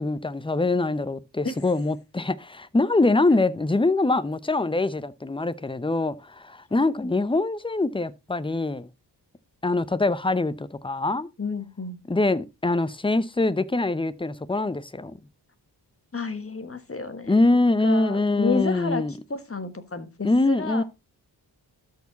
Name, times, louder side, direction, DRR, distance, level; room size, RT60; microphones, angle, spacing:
voice 1, 0.0-8.9 9.6-11.3 12.1-15.2 17.3-19.1 20.2-20.8, left 2 dB, 10° left, 0.6 m, -24 dB
voice 2, 11.4-12.0 16.1-17.4 17.8-20.8, left 4 dB, 30° left, 1.4 m, -30 dB
13.0 x 4.8 x 4.0 m
wide cardioid pair, 75°, 43 cm